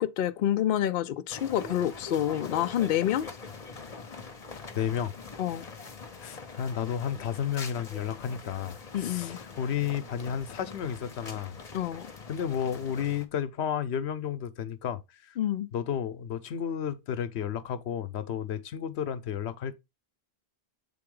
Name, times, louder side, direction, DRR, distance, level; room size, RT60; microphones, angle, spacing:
voice 1, 0.0-3.3 5.4-5.6 8.9-9.4 11.7-12.1 15.4-15.7, left 11 dB, 65° left, 0.7 m, -28 dB
sound 1, 1.3-13.3, left 4 dB, 40° left, 1.0 m, -44 dB
voice 2, 4.7-5.1 6.2-11.6 12.3-15.4 15.7-19.7, left 8 dB, 85° left, 0.9 m, -32 dB
7.7 x 3.9 x 3.7 m
omnidirectional pair, 1.1 m